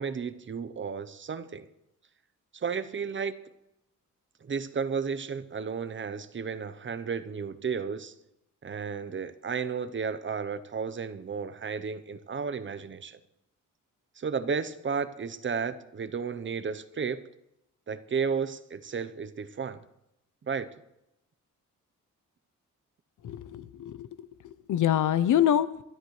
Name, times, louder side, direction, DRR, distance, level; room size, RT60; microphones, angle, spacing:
voice 1, 0.0-1.7 2.5-3.4 4.4-8.1 8.6-13.2 14.2-17.2 17.9-19.8 20.5-20.7, right 6 dB, 35° right, 13 dB, 0.8 m, -33 dB
voice 2, 23.2-24.1 24.4-25.8, left 10 dB, 70° left, 15 dB, 0.7 m, -25 dB
23.0 x 12.5 x 3.2 m, 0.85 s
cardioid pair, 110°, 32 cm